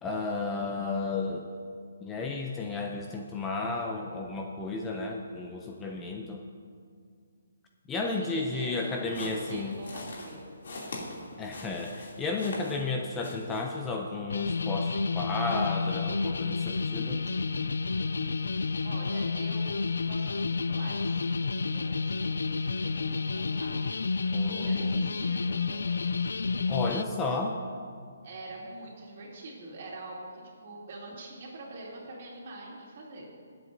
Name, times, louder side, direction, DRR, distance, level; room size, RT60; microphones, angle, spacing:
voice 1, 0.0-1.4 2.0-6.4 7.9-9.8 11.4-17.2 24.3-24.9 26.7-27.6, left 3 dB, 10° left, 1 dB, 0.4 m, -33 dB
voice 2, 8.2-10.5 18.8-19.8 20.1-22.4 23.0-23.8 24.5-26.1 28.2-33.3, right 2 dB, 40° right, -4 dB, 2.8 m, -45 dB
sound 1, 8.7-12.9 13.2-13.6, left 2 dB, 60° left, 2.6 m, -42 dB
sound 2, 14.3-27.0, left 4 dB, 85° left, 0.3 m, -30 dB
22.0 x 7.9 x 2.7 m, 2.2 s
hypercardioid pair, 170°, 0 cm